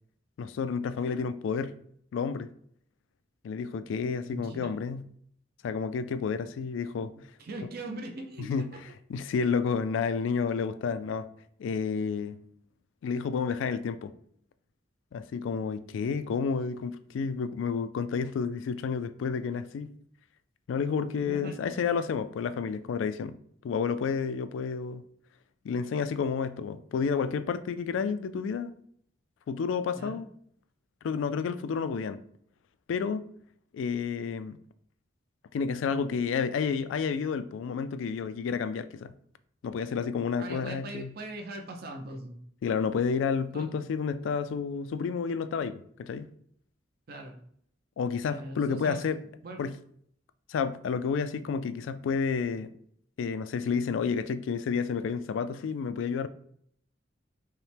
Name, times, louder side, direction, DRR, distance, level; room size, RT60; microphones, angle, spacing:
voice 1, 0.4-1.7 2.1-2.5 3.4-5.0 5.6-7.1 8.4-8.7 9.1-11.3 11.6-12.4 13.0-14.1 15.1-19.9 20.7-23.4 23.6-25.0 25.6-28.7 29.5-30.3 31.0-32.2 32.9-33.2 33.7-34.6 35.5-39.1 39.6-41.1 42.6-46.3 48.0-49.2 49.6-49.8 50.5-52.7 53.2-56.3, left 5 dB, 85° left, 0.3 m, -30 dB
voice 2, 4.2-4.7 7.1-8.8 21.2-21.9 29.9-30.2 40.4-42.4 43.5-43.7 47.1-47.4 48.3-49.0 49.4-49.6, right 1 dB, 55° right, 0.6 m, -41 dB
5.5 x 2.1 x 3.3 m
head